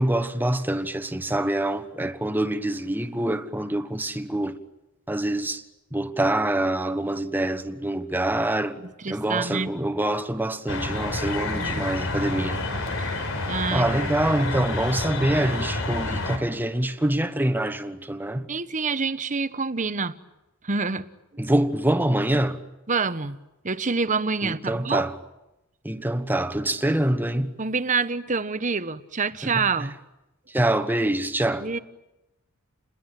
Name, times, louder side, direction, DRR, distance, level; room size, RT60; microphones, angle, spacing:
voice 1, 0.0-4.6 5.1-5.6 5.9-8.8 9.1-12.6 13.7-18.5 21.4-22.6 24.4-25.1 25.8-27.5 29.4-29.6 30.5-31.7, right 1 dB, 10° right, 1.2 m, -25 dB
voice 2, 9.0-9.7 11.5-11.8 13.0-13.2 13.5-14.3 18.5-20.1 20.6-21.1 22.9-23.4 23.6-25.1 27.6-29.9 31.6-31.8, right 4 dB, 35° right, 1.0 m, -27 dB
sound 1, 10.7-16.4, left 2 dB, 70° left, 5.1 m, -29 dB
29.0 x 21.5 x 9.2 m
head